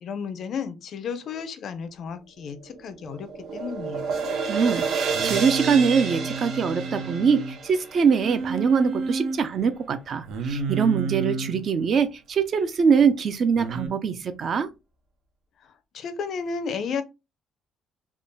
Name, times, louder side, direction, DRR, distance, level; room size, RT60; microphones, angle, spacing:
voice 1, 0.0-4.1 15.6-17.0, left 6 dB, 45° left, 0.5 m, -33 dB
sound 1, 2.5-8.8, right 5 dB, 65° right, 1.0 m, -30 dB
voice 2, 4.5-14.7, right 6 dB, 40° right, 0.4 m, -23 dB
Singing, 5.1-7.6 8.2-9.4 10.3-11.6 13.6-13.9, right 3 dB, 85° right, 0.7 m, -30 dB
3.6 x 2.3 x 3.9 m
cardioid pair, 175°, 0 cm